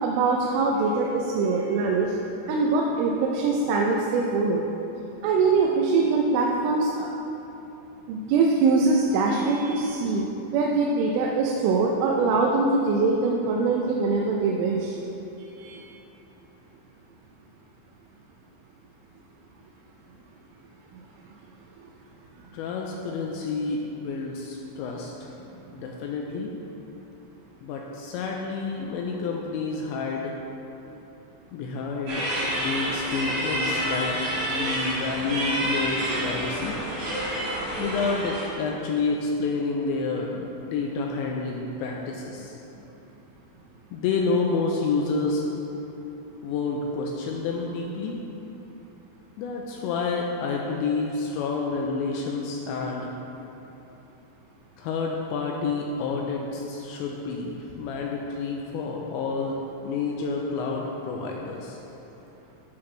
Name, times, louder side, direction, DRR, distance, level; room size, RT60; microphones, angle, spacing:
voice 1, 0.0-2.2 2.5-4.7 5.2-7.1 8.1-10.2 10.5-15.0 15.6-15.8, right 3 dB, 85° right, -1 dB, 3.2 m, -23 dB
voice 2, 22.5-25.3 25.7-26.5 27.6-30.3 31.5-32.3 32.5-34.2 34.5-36.8 37.8-42.6 43.9-45.4 46.4-48.2 49.4-53.1 54.8-59.6 59.8-61.8, left 4 dB, 85° left, 0 dB, 2.7 m, -29 dB
sound 1, 32.1-38.5, right 1 dB, 50° right, 2.5 m, -28 dB
13.0 x 6.1 x 3.3 m, 3.0 s
omnidirectional pair, 5.6 m